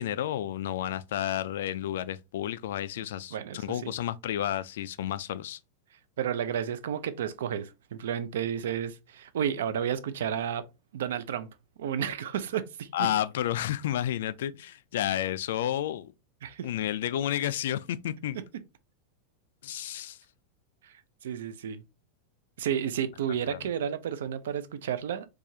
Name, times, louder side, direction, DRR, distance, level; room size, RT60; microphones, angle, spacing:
voice 1, 0.0-5.6 12.9-16.1 16.6-18.4 19.6-20.2 23.5-23.6, left 11 dB, 65° left, 0.3 m, -31 dB
voice 2, 3.3-3.9 6.2-10.6 10.9-11.5 11.8-12.9 16.4-16.7 20.8-21.8 22.6-25.3, right 9 dB, 85° right, 0.5 m, -32 dB
4.6 x 2.4 x 2.7 m
supercardioid pair, 180°, 0 cm